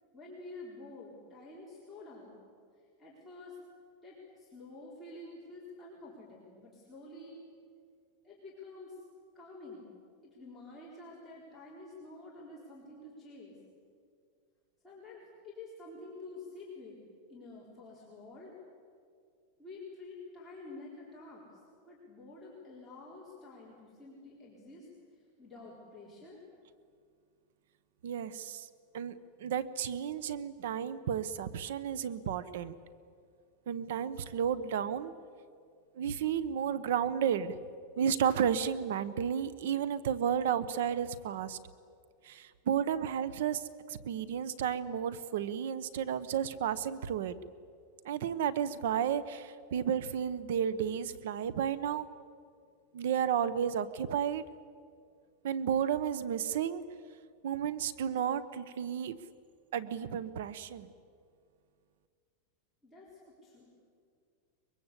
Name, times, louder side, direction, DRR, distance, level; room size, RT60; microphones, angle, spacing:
voice 1, 0.1-2.4 3.0-3.6 4.0-7.4 8.2-9.0 9.3-9.9 10.2-13.6 14.8-17.0 17.3-18.6 19.6-26.4 62.8-63.7, left 2 dB, 5° left, -8 dB, 4.1 m, -49 dB
voice 2, 28.0-28.7 28.9-29.1 29.4-32.7 33.7-35.1 36.0-37.6 38.0-41.6 42.2-43.6 43.9-47.3 48.0-52.1 52.9-54.4 55.4-56.8 57.4-59.2 59.7-60.9, right 8 dB, 70° right, 16 dB, 1.0 m, -32 dB
23.5 x 22.5 x 8.3 m, 2.2 s
supercardioid pair, 170°, 0 cm